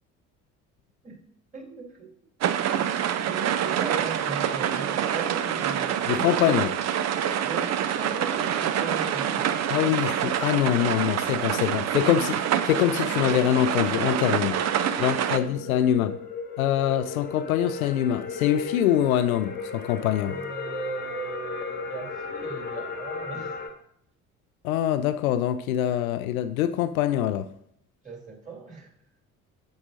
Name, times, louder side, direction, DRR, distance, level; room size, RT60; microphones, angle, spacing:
voice 1, 1.5-2.1 3.1-6.3 7.4-9.8 11.4-11.5 14.7-15.2 15.5-16.0 20.2-23.6 28.0-28.9, right 4 dB, 20° right, 3.3 m, -38 dB
sound 1, 2.4-15.4, right 9 dB, 40° right, 0.7 m, -26 dB
voice 2, 6.1-6.7 9.7-14.6 15.0-16.2 16.6-20.4 24.6-27.5, left 11 dB, 75° left, 0.5 m, -24 dB
sound 2, 11.9-23.7, left 4 dB, 25° left, 1.3 m, -37 dB
10.0 x 7.7 x 2.7 m
figure-of-eight pair, 55°, 43 cm